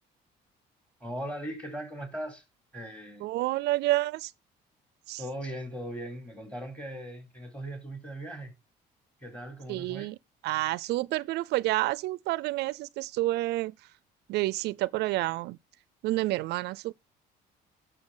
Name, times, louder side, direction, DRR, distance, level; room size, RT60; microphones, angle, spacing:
voice 1, 1.0-2.4 2.7-3.3 5.2-8.5 9.2-10.1, right 1 dB, 5° left, 3.5 m, -39 dB
voice 2, 3.2-4.3 5.1-5.2 9.7-10.2 10.4-13.7 14.3-15.6 16.0-16.9, right 18 dB, 80° right, 0.5 m, -29 dB
9.7 x 6.9 x 3.7 m
cardioid pair, 110°, 17 cm